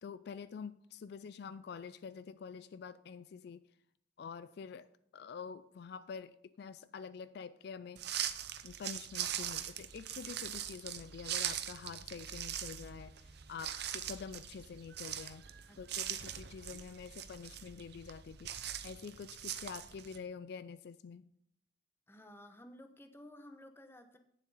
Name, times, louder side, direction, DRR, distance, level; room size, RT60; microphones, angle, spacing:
voice 1, 0.0-3.6 4.2-4.9 5.1-8.1 8.6-15.4 15.8-21.3, left 6 dB, 60° left, 15 dB, 0.4 m, -47 dB
sound 1, 8.0-20.2, right 10 dB, 60° right, 0.7 m, -41 dB
voice 2, 15.7-16.3 22.1-24.2, left 1 dB, 15° left, 7 dB, 0.9 m, -55 dB
9.2 x 7.4 x 5.4 m, 0.71 s
head